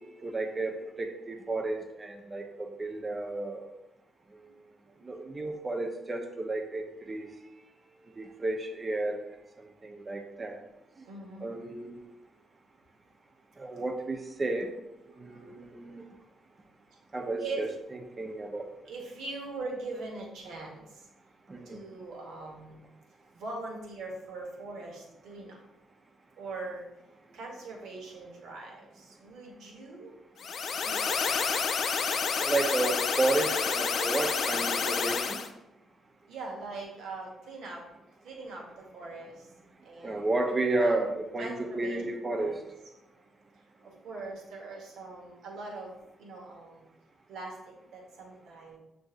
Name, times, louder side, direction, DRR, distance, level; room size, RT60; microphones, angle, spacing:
voice 1, 0.1-3.7 5.0-7.3 8.2-9.2 9.6-10.6 11.4-12.1 13.6-14.7 15.2-16.0 17.1-17.7 18.2-18.7 21.5-21.8 32.4-35.4 40.0-42.6, right 2 dB, 30° right, 4 dB, 0.6 m, -32 dB
voice 2, 11.0-11.5 15.1-15.4 17.4-17.7 18.9-21.1 21.6-22.8 23.3-25.6 26.4-26.8 27.3-30.2 30.7-31.2 36.3-37.8 38.2-39.5 39.8-40.3 40.8-41.1 41.4-42.0 42.3-42.5 43.8-46.8 47.3-48.8, right 3 dB, 80° right, -1 dB, 1.1 m, -42 dB
sound 1, 30.4-35.5, left 6 dB, 65° left, 0.4 m, -29 dB
6.3 x 2.7 x 2.4 m, 0.92 s
cardioid pair, 70°, 0 cm